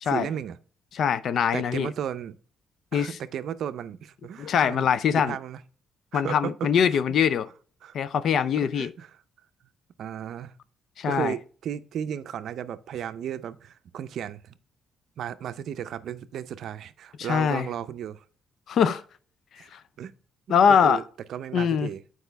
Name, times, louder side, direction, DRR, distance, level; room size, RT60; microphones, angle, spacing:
voice 1, 0.0-0.6 1.5-2.4 2.9-4.9 5.1-5.6 6.1-7.0 7.8-7.9 8.7-9.2 10.0-10.6 11.1-14.5 15.2-18.2 18.8-19.0 19.6-19.7 20.0-20.1 20.5-21.0 21.3-22.0, right 9 dB, 70° right, 0.5 m, -34 dB
voice 2, 0.9-1.9 2.9-3.2 4.4-5.3 6.1-7.5 7.9-8.9 11.0-11.3 17.2-17.7 18.7-19.0 19.7-19.8 20.5-21.0 21.5-21.9, left 7 dB, 65° left, 0.4 m, -23 dB
8.0 x 4.9 x 3.3 m
cardioid pair, 90°, 0 cm